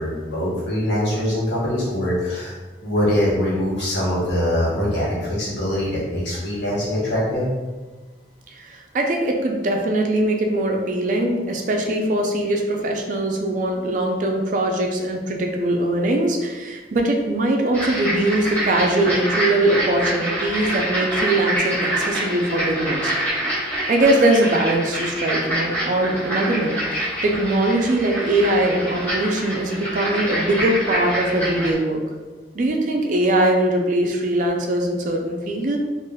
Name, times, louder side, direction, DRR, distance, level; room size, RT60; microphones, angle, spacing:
voice 1, 0.0-2.5 2.8-7.5, left 1 dB, 80° left, -7 dB, 1.0 m, -23 dB
voice 2, 8.5-23.1 23.9-32.0 32.5-35.8, right 1 dB, 45° right, 2 dB, 0.4 m, -21 dB
sound 1, 17.7-31.7, right 1 dB, 15° left, 1.0 m, -26 dB
3.4 x 2.4 x 2.2 m, 1.3 s
head